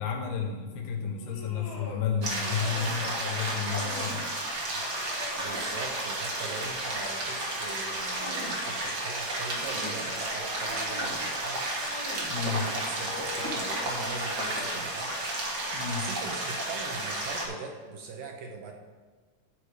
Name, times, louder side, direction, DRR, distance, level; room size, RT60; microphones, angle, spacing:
voice 1, 0.0-4.3 4.7-4.8 12.3-12.6 15.7-16.1, left 7 dB, 85° left, 0 dB, 3.4 m, -32 dB
sound 1, 1.1-2.0 2.3-3.0 3.4-4.2 4.7-6.7 7.2-8.6 9.2-10.1 10.5-11.2 11.7-12.3 12.8-15.0, left 2 dB, 45° left, 2.1 m, -44 dB
sound 2, 2.2-17.5, right 1 dB, 55° right, 1.1 m, -32 dB
voice 2, 5.4-11.7 12.3-15.2 16.0-18.7, right 4 dB, 75° right, 2 dB, 2.3 m, -41 dB
14.0 x 4.9 x 4.8 m, 1.4 s
omnidirectional pair, 4.5 m